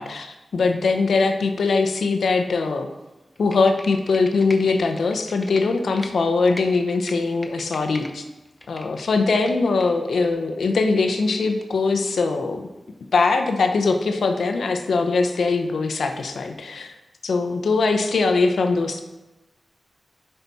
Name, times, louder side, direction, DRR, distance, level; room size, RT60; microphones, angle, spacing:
voice 1, 0.0-2.9 3.4-8.2 8.7-12.7 13.1-17.0 17.2-19.0, left 4 dB, 85° left, 5 dB, 0.8 m, -21 dB
Computer keyboard, 3.4-6.1 6.5-8.1 8.5-9.9 10.2-10.3, left 1 dB, 20° left, 0.8 m, -40 dB
8.1 x 5.7 x 4.2 m, 1.0 s
wide cardioid pair, 125°, 0 cm